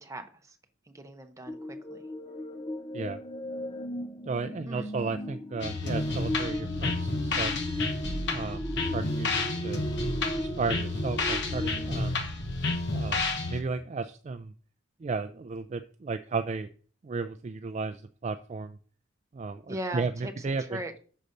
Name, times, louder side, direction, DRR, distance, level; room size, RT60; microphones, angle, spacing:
voice 1, 0.0-0.6 0.9-2.0 4.7-4.9 19.7-20.9, right 1 dB, 15° right, 6 dB, 0.8 m, -39 dB
sound 1, 1.5-12.2, left 1 dB, 25° left, 0.5 m, -37 dB
voice 2, 4.3-7.7 8.3-9.8 10.3-12.2 12.9-14.5 15.0-16.7 17.0-18.8 19.3-21.0, right 4 dB, 35° right, 10 dB, 0.3 m, -34 dB
sound 2, 5.6-13.6, left 3 dB, 60° left, 1.2 m, -30 dB
6.5 x 4.1 x 6.5 m, 0.43 s
head